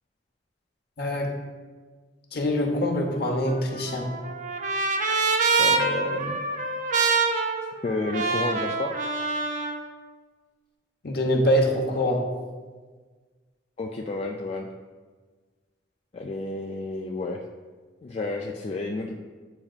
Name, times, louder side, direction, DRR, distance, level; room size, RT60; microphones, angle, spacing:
voice 1, 1.0-1.3 2.3-4.1 11.0-12.2, equal, 55° left, 0 dB, 0.9 m, -24 dB
Trumpet, 3.5-9.8, right 4 dB, 40° right, 0.5 m, -26 dB
voice 2, 5.6-6.4 7.8-8.9 13.8-14.7 16.1-17.4 18.0-19.1, left 3 dB, 35° left, 0 dB, 0.3 m, -31 dB
8.7 x 4.9 x 2.4 m, 1.4 s
head